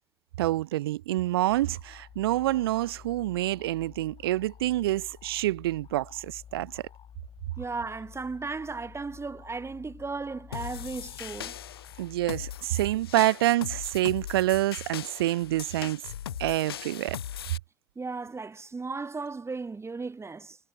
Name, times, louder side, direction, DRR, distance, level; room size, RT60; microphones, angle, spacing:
voice 1, 0.4-6.8 12.0-16.0 16.4-17.2, right 15 dB, 80° right, 0.4 m, -27 dB
sound 1, 1.5-13.0, left 9 dB, 45° left, 2.5 m, -51 dB
voice 2, 7.6-11.5 18.0-20.6, right 4 dB, 20° right, 0.8 m, -36 dB
sound 2, 10.5-17.6, left 10 dB, 85° left, 1.4 m, -39 dB
figure-of-eight pair, 55°, 13 cm